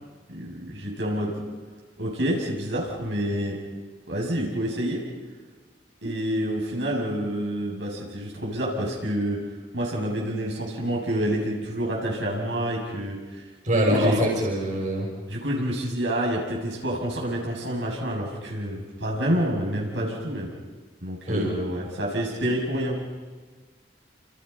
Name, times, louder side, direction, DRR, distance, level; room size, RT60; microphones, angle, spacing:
voice 1, 0.3-1.3 2.0-3.6 4.1-5.0 6.0-9.4 9.7-13.2 13.7-14.2 15.3-20.5 21.0-23.0, equal, 80° right, -2 dB, 7.4 m, -28 dB
voice 2, 13.6-15.1 21.3-21.5, equal, 45° right, -2 dB, 6.4 m, -23 dB
29.5 x 29.5 x 5.6 m, 1.4 s
head